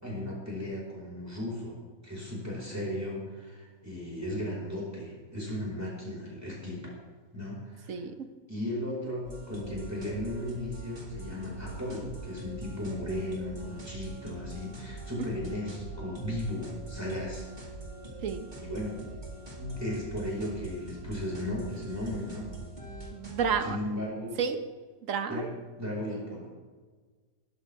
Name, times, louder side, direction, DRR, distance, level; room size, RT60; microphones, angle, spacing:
voice 1, 0.0-6.9 7.3-8.0 8.5-17.7 18.6-19.0 19.6-22.5 23.6-24.4 25.3-25.5 25.8-26.5, left 1 dB, 10° right, -4 dB, 5.2 m, -36 dB
voice 2, 7.9-8.3 18.2-18.5 23.1-23.8 24.4-24.6 25.1-25.5, right 6 dB, 65° right, 9 dB, 1.3 m, -30 dB
sound 1, 9.2-23.6, right 2 dB, 30° right, 2.4 m, -43 dB
20.0 x 12.5 x 3.6 m, 1.4 s
omnidirectional pair, 1.5 m